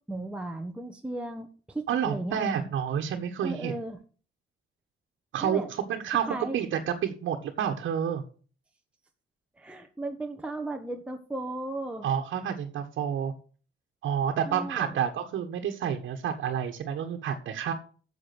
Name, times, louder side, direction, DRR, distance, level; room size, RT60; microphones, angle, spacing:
voice 1, 0.1-2.4 3.4-4.0 5.4-5.7 6.3-6.6 9.6-12.1 14.5-15.0, right 2 dB, 5° right, 3 dB, 1.2 m, -35 dB
voice 2, 1.9-3.7 5.3-8.2 12.0-13.3 14.0-17.7, right 8 dB, 75° right, 3 dB, 1.5 m, -29 dB
8.5 x 7.2 x 6.0 m, 0.40 s
cardioid pair, 90°, 20 cm